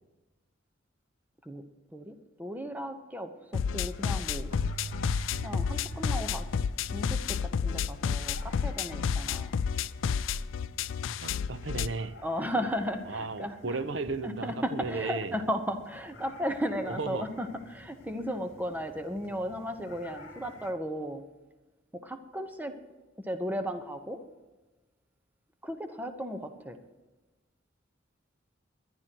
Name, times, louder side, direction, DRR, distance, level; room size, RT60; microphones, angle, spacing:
voice 1, 1.9-4.5 5.4-6.5 6.8-9.5 12.2-13.8 14.2-21.2 21.9-22.7 23.2-24.2 25.6-26.8, equal, 10° right, 1.0 m, -35 dB
sound 1, 3.5-11.9, left 6 dB, 85° left, 0.4 m, -31 dB
sound 2, 3.9-20.7, left 2 dB, 60° left, 2.1 m, -53 dB
Keyboard (musical), 4.5-8.0, right 5 dB, 40° right, 4.0 m, -45 dB
voice 2, 11.2-12.2 13.1-15.3 16.9-17.3, right 3 dB, 65° right, 0.8 m, -34 dB
21.5 x 11.5 x 3.0 m
head